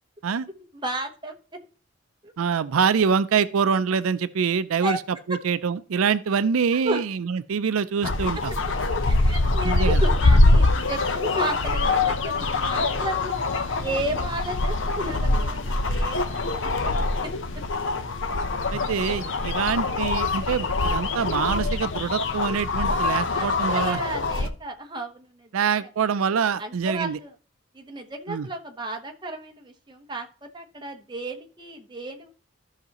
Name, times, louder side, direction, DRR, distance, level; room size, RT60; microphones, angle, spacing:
voice 1, 0.7-1.3 2.2-2.3 4.8-5.0 6.8-7.0 9.0-13.3 13.7-16.9 17.2-17.3 23.1-23.5 23.7-25.5 25.8-25.9 26.6-27.3 27.7-32.3, right 1 dB, 20° right, 1.0 m, -33 dB
voice 2, 2.4-5.0 5.3-8.5 9.6-10.0 18.7-24.0 25.5-27.2 28.3-28.5, right 6 dB, 90° right, 0.4 m, -25 dB
sound 1, 8.0-24.5, left 2 dB, 65° left, 0.8 m, -23 dB
14.5 x 5.8 x 2.9 m
head